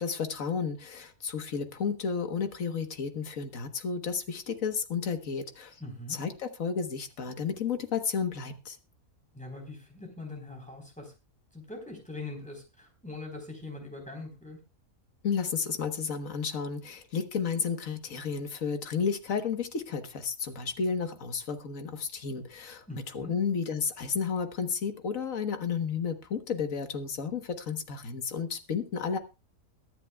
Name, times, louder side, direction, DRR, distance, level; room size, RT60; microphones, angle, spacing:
voice 1, 0.0-5.8 6.1-8.8 15.2-29.2, left 6 dB, 70° left, 8 dB, 1.7 m, -32 dB
voice 2, 5.8-6.2 9.3-11.1 11.5-14.6 22.9-23.3, left 2 dB, 5° left, 3 dB, 4.0 m, -42 dB
22.5 x 9.8 x 2.3 m, 0.27 s
omnidirectional pair, 1.5 m